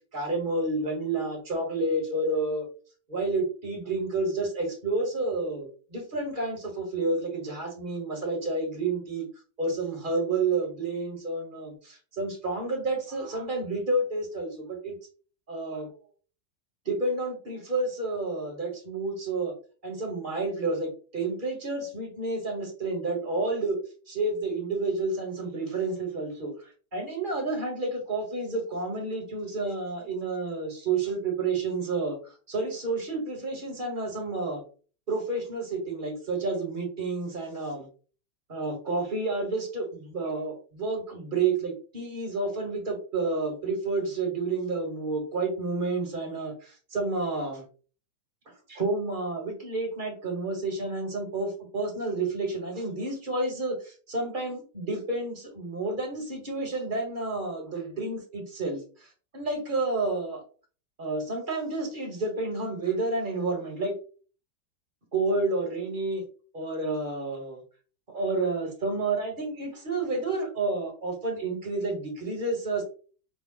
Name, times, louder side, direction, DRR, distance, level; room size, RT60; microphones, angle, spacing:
voice 1, 0.0-2.6 3.1-9.3 9.6-15.0 15.5-15.9 16.8-19.5 19.8-23.8 24.1-34.6 35.1-37.9 38.5-47.6 48.7-60.4 61.0-63.9 65.1-66.2 66.5-67.6 68.1-72.8, right 3 dB, 30° right, 1 dB, 1.2 m, -30 dB
5.3 x 2.3 x 3.7 m, 0.39 s
omnidirectional pair, 1.9 m